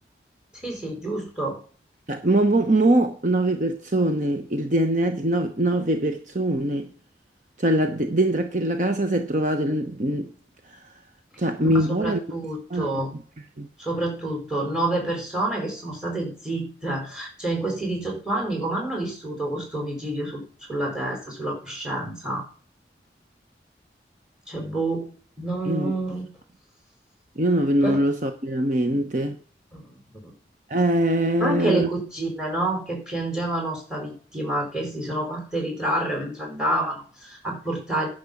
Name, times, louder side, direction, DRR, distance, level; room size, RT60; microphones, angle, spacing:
voice 1, 0.6-1.6 11.7-13.1 13.8-20.4 20.7-22.4 24.5-25.1 25.4-26.3 27.8-28.0 29.7-29.9 30.2-30.3 31.4-38.1, right 1 dB, 5° right, 4.5 m, -28 dB
voice 2, 2.1-6.9 7.6-10.3 10.7-10.8 11.4-12.2 12.7-12.9 13.1-13.2 13.6-13.7 25.7-25.9 27.4-29.4 30.7-31.9, right 1 dB, 45° right, 1.0 m, -22 dB
10.5 x 6.4 x 7.1 m
head